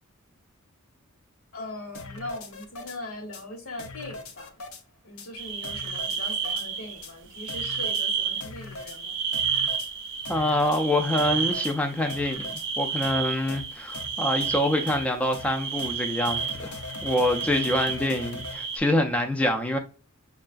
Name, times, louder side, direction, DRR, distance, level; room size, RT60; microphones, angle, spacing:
voice 1, 1.5-4.6 5.0-9.1, left 1 dB, 75° left, 1.1 m, -40 dB
sound 1, 1.9-3.0 3.3-3.4 3.8-4.8 5.2-5.3 5.6-6.7 7.0-7.1 7.5-8.0 8.4-9.0 9.3-9.9 10.2-10.8 11.2-11.7 12.1-12.7 13.0-13.2 13.5-13.6 13.9-14.1 14.4-14.5 14.9-15.0 15.3-15.5 15.8-15.9 16.2-18.6, left 3 dB, 90° left, 0.6 m, -40 dB
sound 2, 5.4-7.1 7.3-8.4 8.7-18.8, right 7 dB, 60° right, 0.5 m, -31 dB
voice 2, 10.3-19.8, left 1 dB, 5° left, 0.3 m, -26 dB
5.2 x 2.3 x 2.4 m
head